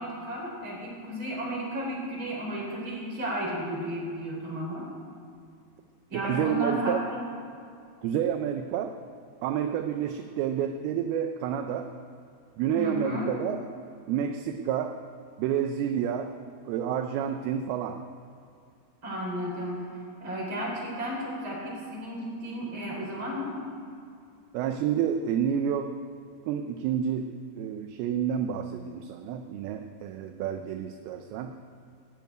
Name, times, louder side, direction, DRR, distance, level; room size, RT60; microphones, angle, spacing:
voice 1, 0.0-4.9 6.1-7.3 12.7-13.3 19.0-19.9 20.2-23.6, equal, 30° right, -3 dB, 4.6 m, -33 dB
voice 2, 6.1-7.0 8.0-9.0 9.4-11.9 12.6-13.6 14.1-15.0 15.4-16.4 16.7-18.0 24.5-26.0 26.5-31.6, right 9 dB, 80° right, 6 dB, 2.4 m, -29 dB
19.0 x 7.0 x 9.3 m, 2.4 s
omnidirectional pair, 4.9 m